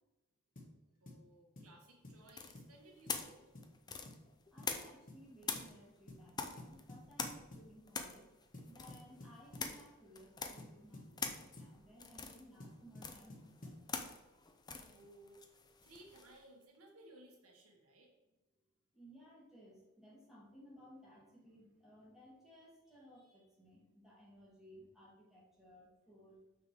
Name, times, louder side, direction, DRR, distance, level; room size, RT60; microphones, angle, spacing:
sound 1, 0.6-0.8 1.1-1.2 1.6-1.8 2.0-2.2 2.5-2.8 3.1-3.2 3.5-3.7 4.1-4.3 4.6-4.8 5.1-5.2 5.5-5.7 6.1-6.3 6.6-7.7 8.5-9.7 10.6-11.8 12.6-13.8, left 1 dB, 40° left, 1.4 m, -53 dB
voice 1, 1.0-3.5 14.9-18.1, right 1 dB, 90° right, 0 dB, 1.6 m, -60 dB
sound 2, 2.3-5.1 5.4-16.4, left 5 dB, 20° left, 0.5 m, -45 dB
voice 2, 4.5-8.3 8.7-13.9 18.9-26.4, equal, ahead, -6 dB, 2.0 m, -60 dB
5.9 x 5.0 x 4.8 m, 1.1 s
head